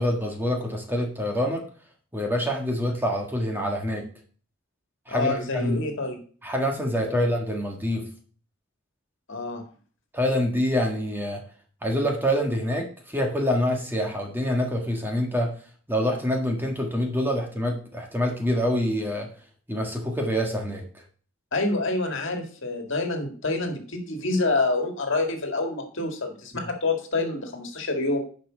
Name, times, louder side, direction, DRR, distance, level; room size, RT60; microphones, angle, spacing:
voice 1, 0.0-1.6 2.1-4.0 5.1-5.8 6.4-8.1 10.1-11.4 11.8-15.5 15.9-19.3 19.7-20.8, equal, 10° right, 1 dB, 1.5 m, -26 dB
voice 2, 5.1-6.2 7.1-7.2 9.3-9.6 21.5-28.2, left 2 dB, 60° left, 4 dB, 1.8 m, -27 dB
10.0 x 5.4 x 5.0 m, 0.43 s
head